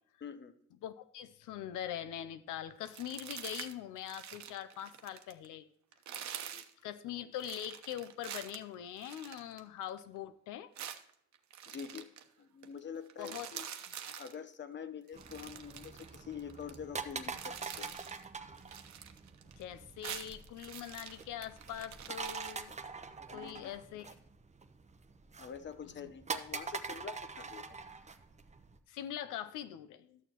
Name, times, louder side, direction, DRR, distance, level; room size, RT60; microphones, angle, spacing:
voice 1, 0.2-0.5 6.5-6.7 11.7-12.1 12.4-13.7 14.1-18.0 23.3-23.7 25.4-27.8, left 7 dB, 40° left, 11 dB, 0.9 m, -46 dB
voice 2, 0.8-5.7 6.8-10.7 13.2-13.5 14.1-14.2 19.6-22.8 23.3-24.1 26.0-26.1 28.9-30.2, left 11 dB, 85° left, 12 dB, 0.6 m, -43 dB
sound 1, 2.8-3.7 4.0-5.5 5.9-6.7 7.4-10.0 10.8-12.2 12.6-12.8 13.1-14.3 15.1-16.8 17.1-18.2 18.6-19.6 19.9-22.5, right 9 dB, 65° right, 1.0 m, -46 dB
sound 2, 15.1-28.8, right 4 dB, 25° right, 0.8 m, -45 dB
13.0 x 6.7 x 2.9 m, 0.72 s
cardioid pair, 90°, 30 cm